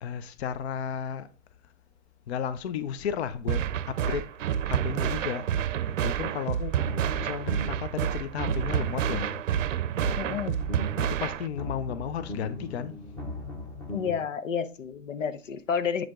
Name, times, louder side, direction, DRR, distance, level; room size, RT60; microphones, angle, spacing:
voice 1, 0.0-1.3 2.3-4.3 4.7-5.5 6.0-6.6 7.2-9.3 11.0-13.0, left 8 dB, 60° left, 0.7 m, -33 dB
sound 1, 3.5-11.5, right 9 dB, 90° right, 0.7 m, -29 dB
sound 2, 6.6-7.9 8.2-9.5 9.8-11.1 11.4-14.2, left 2 dB, 5° left, 0.6 m, -38 dB
voice 2, 10.2-10.6 13.9-16.1, left 7 dB, 90° left, 1.0 m, -31 dB
7.8 x 5.0 x 3.7 m
hypercardioid pair, 165°, 37 cm